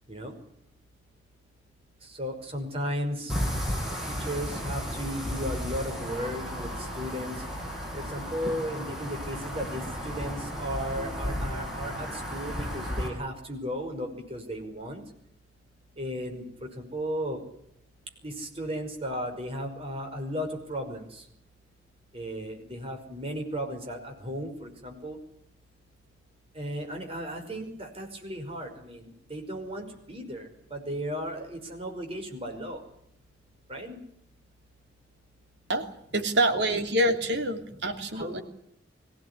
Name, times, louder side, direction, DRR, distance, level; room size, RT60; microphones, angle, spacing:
voice 1, 2.0-3.3 4.1-7.5 7.9-15.0 16.0-17.4 18.2-21.3 22.1-25.2 26.5-32.8 33.7-34.0 38.0-38.4, equal, 30° right, 3 dB, 5.5 m, -35 dB
sound 1, 3.3-13.1, equal, ahead, 7.7 m, -34 dB
voice 2, 36.1-38.4, right 1 dB, 65° right, 6 dB, 3.0 m, -26 dB
23.0 x 17.0 x 9.9 m, 0.71 s
head